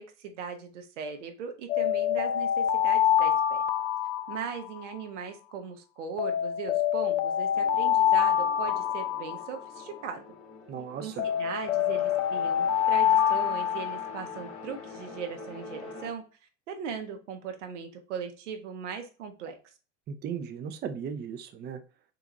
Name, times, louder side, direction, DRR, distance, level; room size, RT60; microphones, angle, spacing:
voice 1, 0.0-3.6 4.3-10.2 11.0-16.2 16.7-19.6, right 6 dB, 85° right, 6 dB, 0.8 m, -39 dB
Alarm, 1.7-5.0 6.2-10.0 11.2-14.4, left 10 dB, 75° left, 0.5 m, -26 dB
sound 1, 7.5-16.1, left 3 dB, 35° left, 1.3 m, -45 dB
voice 2, 10.7-11.3 20.1-21.8, right 7 dB, 30° right, 7 dB, 0.5 m, -36 dB
3.8 x 2.5 x 2.9 m, 0.35 s
hypercardioid pair, 95°, 35 cm